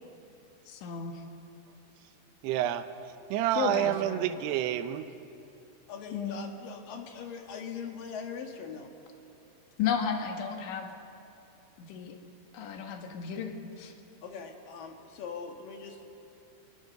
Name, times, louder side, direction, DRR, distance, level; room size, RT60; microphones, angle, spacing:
voice 1, 0.7-1.2 3.6-4.2 6.1-6.4 9.8-10.9 11.8-12.2 12.5-13.9, left 7 dB, 85° left, 4 dB, 4.1 m, -33 dB
voice 2, 2.4-2.9 3.3-5.1, right 12 dB, 75° right, 9 dB, 2.7 m, -28 dB
voice 3, 5.9-8.9 14.2-16.0, left 6 dB, 60° left, 3 dB, 2.7 m, -41 dB
27.0 x 22.5 x 6.6 m, 2.8 s
omnidirectional pair, 5.2 m